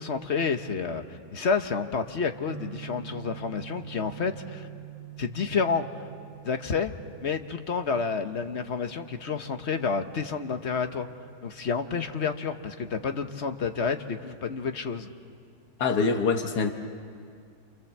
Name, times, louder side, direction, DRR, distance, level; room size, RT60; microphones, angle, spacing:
voice 1, 0.0-4.7 5.2-5.9 6.4-6.9 7.2-11.1 11.4-15.1, left 5 dB, 50° left, 7 dB, 1.3 m, -29 dB
sound 1, 2.5-12.2, right 11 dB, 10° right, 3.9 m, -47 dB
voice 2, 15.8-16.7, left 4 dB, 80° left, 5 dB, 1.7 m, -24 dB
28.5 x 28.0 x 7.3 m, 2.2 s
omnidirectional pair, 1.7 m